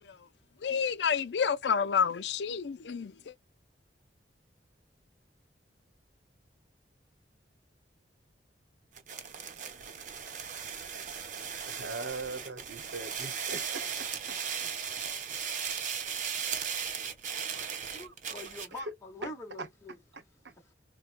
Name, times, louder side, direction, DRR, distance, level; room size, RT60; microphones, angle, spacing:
voice 1, 0.6-3.3, left 6 dB, 70° left, 0.5 m, -29 dB
sound 1, 8.9-18.8, right 7 dB, 45° right, 0.8 m, -37 dB
voice 2, 11.7-14.7 17.5-17.7 18.0-18.4 18.8-18.9 19.2-19.3 19.6-19.7 20.1-20.5, right 3 dB, 75° right, 0.9 m, -41 dB
voice 3, 17.9-20.0 20.7-20.8, left 1 dB, 15° left, 1.0 m, -44 dB
4.4 x 2.2 x 2.4 m
head